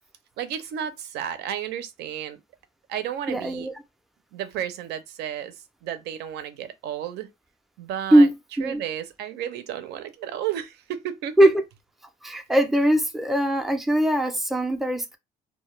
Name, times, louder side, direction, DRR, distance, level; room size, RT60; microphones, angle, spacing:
voice 1, 0.4-2.4 2.9-3.7 4.3-7.3 7.8-8.3 8.6-11.5, right 10 dB, 80° right, 0.5 m, -32 dB
voice 2, 3.3-3.7 8.1-8.8 11.4-11.5 12.2-15.2, right 1 dB, ahead, 0.4 m, -20 dB
2.2 x 2.1 x 3.0 m
cardioid pair, 110°, 17 cm